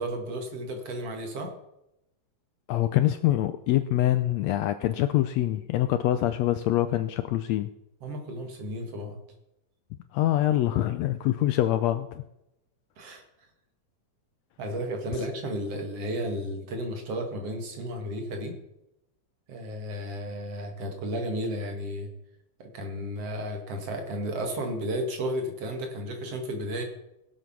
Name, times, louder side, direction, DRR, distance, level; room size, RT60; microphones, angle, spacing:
voice 1, 0.0-1.5 8.0-9.2 13.0-13.2 14.6-18.5 19.5-22.1 22.6-26.8, equal, 55° right, 4 dB, 2.7 m, -33 dB
voice 2, 2.7-7.7 10.1-12.2 15.2-15.3, left 13 dB, 80° left, 11 dB, 1.6 m, -25 dB
18.0 x 7.7 x 6.0 m, 0.87 s
omnidirectional pair, 3.5 m